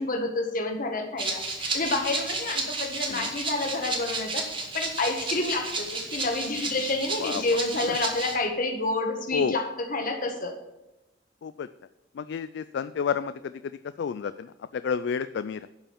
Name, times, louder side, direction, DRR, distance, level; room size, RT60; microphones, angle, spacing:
voice 1, 0.0-4.5 4.7-10.5, left 2 dB, 45° left, 4 dB, 1.6 m, -29 dB
Rattle (instrument), 1.2-8.4, right 3 dB, 25° right, 1.8 m, -32 dB
voice 2, 12.1-13.5 14.0-15.7, left 6 dB, 65° left, 13 dB, 0.3 m, -30 dB
11.5 x 5.7 x 7.1 m, 1.0 s
head